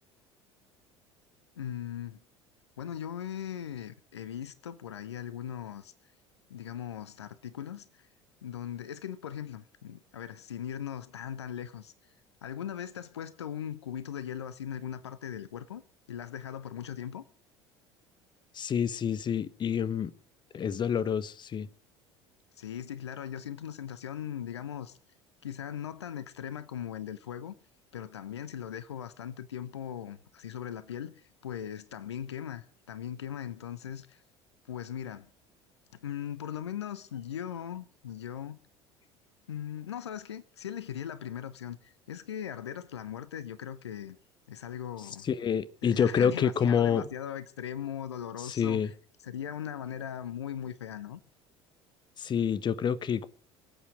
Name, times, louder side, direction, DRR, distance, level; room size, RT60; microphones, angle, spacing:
voice 1, 1.6-2.2 2.8-6.1 6.5-8.1 8.4-12.1 12.4-15.8 16.1-17.2 22.6-25.0 25.4-27.5 27.9-34.2 34.7-35.3 35.9-38.6 39.5-44.2 44.5-45.3 45.8-48.9 49.2-51.2, left 9 dB, 75° left, 0.8 m, -39 dB
voice 2, 18.5-20.1 20.5-21.7 45.2-47.0 48.4-48.9 52.2-53.3, left 7 dB, 30° left, 1.1 m, -27 dB
24.5 x 8.5 x 6.2 m
figure-of-eight pair, 65°, 14 cm